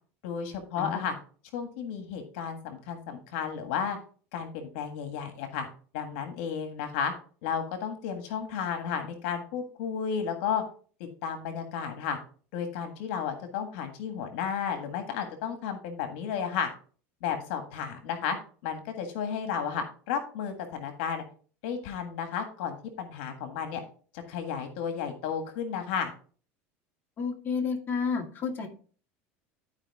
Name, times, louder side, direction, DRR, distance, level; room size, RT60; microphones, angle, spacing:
voice 1, 0.2-1.2 1.5-4.0 4.3-5.7 5.9-7.1 7.4-10.6 11.2-12.2 12.5-16.7 17.2-18.4 18.6-21.2 21.6-23.8 24.1-26.1, left 7 dB, 75° left, 7 dB, 1.6 m, -33 dB
voice 2, 27.2-28.7, left 5 dB, 35° left, 2 dB, 2.1 m, -30 dB
12.5 x 5.0 x 3.5 m, 0.42 s
supercardioid pair, 120°, 6 cm